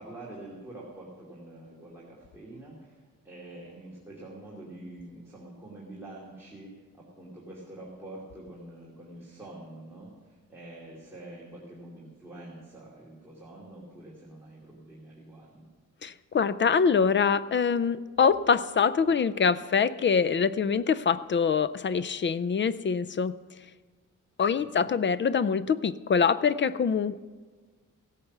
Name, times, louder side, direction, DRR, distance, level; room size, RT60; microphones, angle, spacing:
voice 1, 0.0-3.0 3.2-15.7 24.6-24.9, right 1 dB, 10° right, -6 dB, 2.5 m, -46 dB
voice 2, 16.0-23.4 24.4-27.2, left 6 dB, 40° left, 16 dB, 0.4 m, -24 dB
16.5 x 8.6 x 6.0 m, 1.4 s
wide cardioid pair, 125°, 32 cm